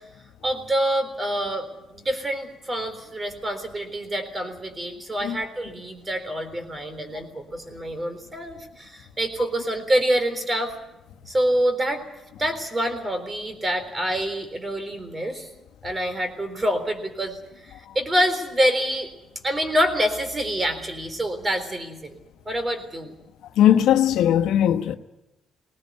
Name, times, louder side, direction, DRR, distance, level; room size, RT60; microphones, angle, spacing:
voice 1, 0.4-10.7 11.3-12.0 12.4-15.5 15.8-19.1 19.4-22.1 22.5-23.1, equal, 25° right, 3.8 m, -26 dB
voice 2, 23.6-25.0, left 10 dB, 85° left, 1.1 m, -18 dB
19.0 x 19.0 x 9.5 m
cardioid pair, 90°, 0 cm